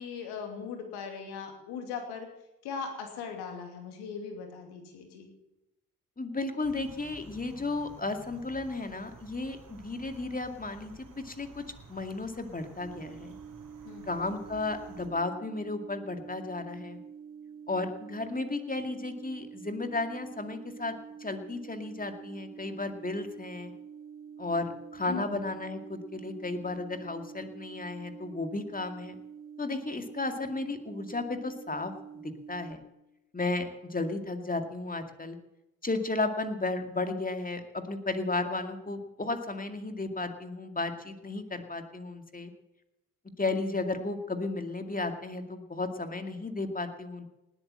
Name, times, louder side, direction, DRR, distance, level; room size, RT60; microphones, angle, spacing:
voice 1, 0.0-2.3 2.6-5.3 13.8-14.1 25.1-25.4, left 6 dB, 75° left, 4 dB, 2.8 m, -39 dB
voice 2, 6.2-11.6 11.9-13.3 14.0-17.0 17.7-23.7 24.4-29.2 29.6-31.9 32.5-32.8 33.3-35.4 35.8-42.5 43.4-47.2, left 3 dB, 20° left, 7 dB, 2.2 m, -34 dB
sound 1, 6.6-15.1, right 4 dB, 50° right, 3.2 m, -52 dB
sound 2, 12.8-32.7, right 7 dB, 35° right, 5.1 m, -47 dB
19.0 x 8.9 x 7.5 m, 0.93 s
hypercardioid pair, 40°, 40 cm